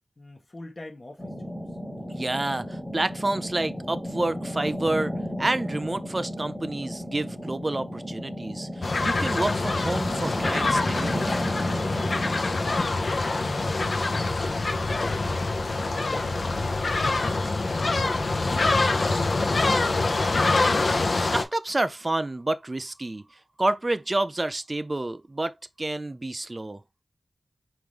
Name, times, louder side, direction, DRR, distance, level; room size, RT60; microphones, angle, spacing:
voice 1, 0.2-1.5 12.1-15.2 15.7-16.9 17.2-18.7 19.0-20.5, left 2 dB, 35° left, 1.4 m, -44 dB
sound 1, 1.2-12.6, equal, ahead, 1.1 m, -34 dB
voice 2, 2.1-5.1 5.4-11.4 21.2-23.2 23.6-26.8, right 2 dB, 30° right, 0.4 m, -29 dB
sound 2, 8.8-21.4, left 3 dB, 60° left, 0.7 m, -25 dB
sound 3, 12.6-18.8, left 2 dB, 75° left, 0.9 m, -40 dB
4.7 x 2.6 x 3.5 m
wide cardioid pair, 85°, 0 cm